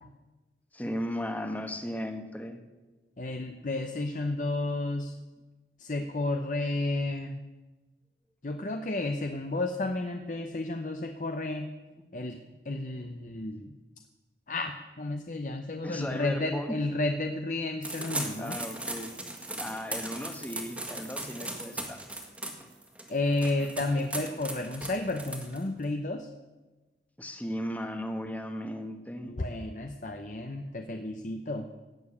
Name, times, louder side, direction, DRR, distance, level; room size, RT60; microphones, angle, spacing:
voice 1, 0.7-2.6 15.8-16.8 18.4-19.1 19.6-22.0 27.2-29.4, equal, 10° left, 6 dB, 1.2 m, -36 dB
voice 2, 3.2-5.1 5.8-7.4 8.4-11.7 12.1-12.4 12.6-13.7 14.5-18.6 23.1-26.3 29.2-31.7, left 2 dB, 45° left, 5 dB, 0.8 m, -32 dB
sound 1, 17.8-25.8, right 1 dB, 10° right, 1.6 m, -38 dB
17.0 x 7.0 x 8.6 m, 1.2 s
head